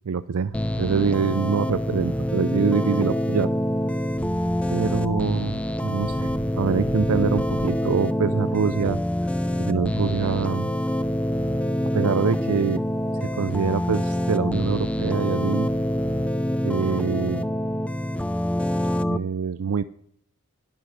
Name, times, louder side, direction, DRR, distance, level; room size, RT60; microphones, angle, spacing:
voice 1, 0.1-3.5 4.7-9.0 9.6-10.7 11.9-12.8 13.1-15.7 16.6-17.4 19.1-19.8, right 6 dB, 70° right, 14 dB, 0.4 m, -25 dB
sound 1, 0.5-19.2, equal, 5° left, 0.5 m, -26 dB
Thunder / Rain, 3.3-15.7, equal, 35° right, 2.5 m, -41 dB
11.0 x 10.0 x 8.0 m, 0.66 s
head